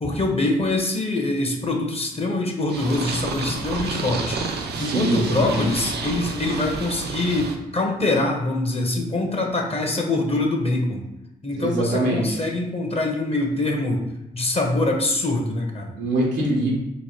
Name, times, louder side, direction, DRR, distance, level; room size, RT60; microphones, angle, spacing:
voice 1, 0.0-4.4 4.8-11.0 11.4-14.0 14.3-15.9, left 2 dB, 35° left, 1 dB, 0.9 m, -24 dB
Purr, 2.7-7.6, right 4 dB, 65° right, 0.5 m, -30 dB
voice 2, 4.7-5.7 11.5-12.4 16.0-16.8, right 1 dB, 85° right, -2 dB, 1.0 m, -23 dB
3.1 x 2.2 x 4.3 m, 0.95 s
supercardioid pair, 50°, 18 cm